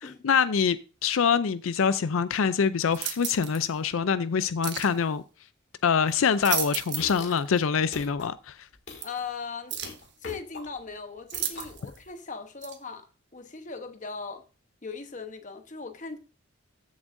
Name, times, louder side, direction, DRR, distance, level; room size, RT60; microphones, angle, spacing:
voice 1, 0.0-5.2 5.8-8.6, left 6 dB, 85° left, 0.5 m, -25 dB
sound 1, 2.9-3.6 4.6-4.9 6.2-7.2 7.6-7.7 9.0-9.1 9.7-10.0 11.3-12.0 12.6-12.8, right 10 dB, 60° right, 1.4 m, -33 dB
sound 2, 6.1-6.4 6.9-7.5 7.9-8.3 8.7-9.2 9.8-10.9 11.3-12.1, left 3 dB, 60° left, 2.2 m, -42 dB
voice 2, 8.9-9.8 10.2-13.1 13.3-14.5 14.8-16.2, left 5 dB, 40° left, 1.0 m, -39 dB
14.0 x 7.2 x 2.6 m
head